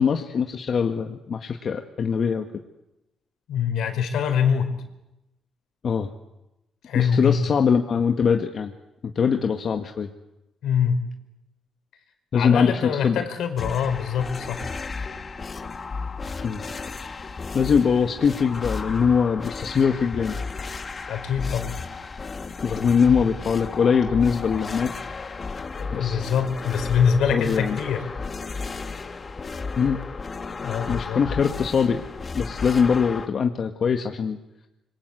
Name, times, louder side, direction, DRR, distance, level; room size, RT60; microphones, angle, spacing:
voice 1, 0.0-2.4 5.8-6.1 6.9-8.7 9.1-10.1 12.3-13.2 16.4-16.6 17.5-20.4 22.6-24.9 25.9-26.2 27.3-27.8 29.8-30.0 30.9-32.0 32.3-34.4, left 6 dB, 50° left, 5 dB, 1.8 m, -22 dB
voice 2, 3.5-4.7 6.8-7.5 10.6-11.0 12.3-14.6 21.1-21.7 23.0-23.2 25.7-28.0 30.6-31.2, left 7 dB, 75° left, 7 dB, 4.7 m, -24 dB
sound 1, 13.6-33.3, left 4 dB, 35° left, 2.1 m, -33 dB
26.5 x 24.0 x 8.3 m, 0.93 s
cardioid pair, 90°, 0 cm